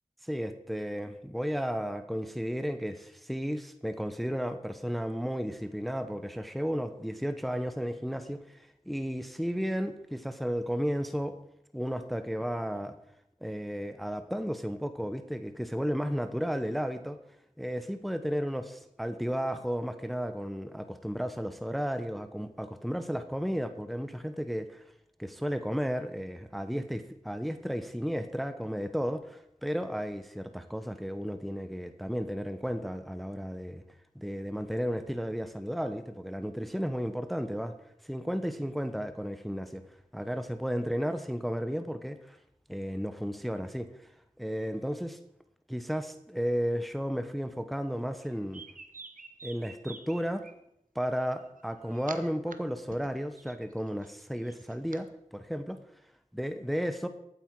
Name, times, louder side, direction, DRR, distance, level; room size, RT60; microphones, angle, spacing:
voice 1, 0.2-11.4 11.7-13.0 13.4-17.2 17.6-18.7 19.0-24.8 25.2-33.8 34.1-37.7 38.0-39.8 40.1-42.4 42.7-43.9 44.4-45.2 45.7-48.6 49.4-50.4 50.9-55.8 56.3-57.1, equal, ahead, 9 dB, 0.9 m, -33 dB
sound 1, 48.2-50.5 51.4-52.5 52.9-55.0, right 4 dB, 70° right, 0.9 m, -48 dB
14.5 x 8.6 x 4.7 m, 0.79 s
wide cardioid pair, 45°, 14 cm